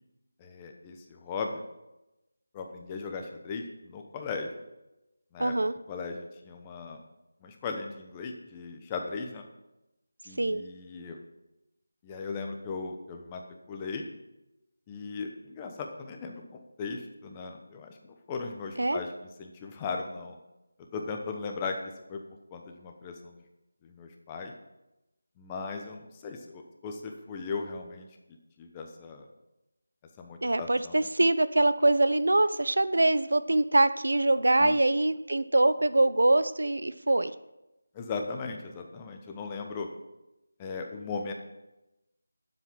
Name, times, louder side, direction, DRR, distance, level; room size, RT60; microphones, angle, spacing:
voice 1, 0.4-1.6 2.5-4.5 5.3-5.5 5.9-7.0 7.4-9.4 10.2-11.2 12.0-13.4 13.7-14.1 14.9-18.0 18.3-19.1 19.4-20.4 20.8-22.2 22.5-23.4 23.8-24.5 25.4-28.1 28.6-29.3 30.2-30.9 34.6-34.8 37.9-39.9 40.6-41.3, left 4 dB, 15° left, 3 dB, 1.0 m, -37 dB
voice 2, 5.4-5.7 10.4-10.6 18.8-19.0 30.4-37.3, right 2 dB, 80° right, 13 dB, 0.7 m, -24 dB
9.4 x 7.7 x 7.5 m, 0.97 s
figure-of-eight pair, 170°, 0 cm